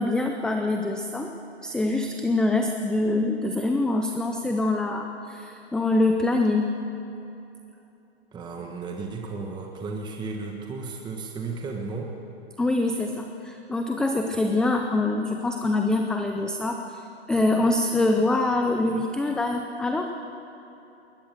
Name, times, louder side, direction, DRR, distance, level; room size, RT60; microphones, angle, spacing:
voice 1, 0.0-1.3 1.6-6.7 12.6-17.0 17.3-20.1, left 2 dB, ahead, 4 dB, 0.5 m, -24 dB
voice 2, 8.3-12.1, right 4 dB, 15° right, 1 dB, 1.4 m, -34 dB
20.5 x 20.0 x 6.7 m, 2.9 s
hypercardioid pair, 130°, 33 cm